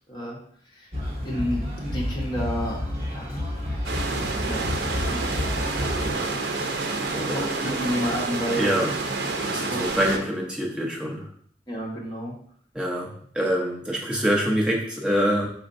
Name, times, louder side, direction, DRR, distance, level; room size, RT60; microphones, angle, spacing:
voice 1, 0.1-0.4 0.7-0.9 1.2-2.8 3.1-3.4 4.4-6.5 7.2-8.9 9.7-9.8 11.7-12.4, equal, 25° left, -3 dB, 1.0 m, -31 dB
sound 1, 0.9-6.1, left 1 dB, 35° right, 1.0 m, -30 dB
sound 2, 3.8-10.2, right 3 dB, 75° right, 0.6 m, -28 dB
voice 2, 6.9-7.8 8.6-8.9 9.4-11.3 12.7-15.5, equal, 5° right, -2 dB, 0.7 m, -26 dB
4.5 x 4.3 x 2.6 m, 0.62 s
head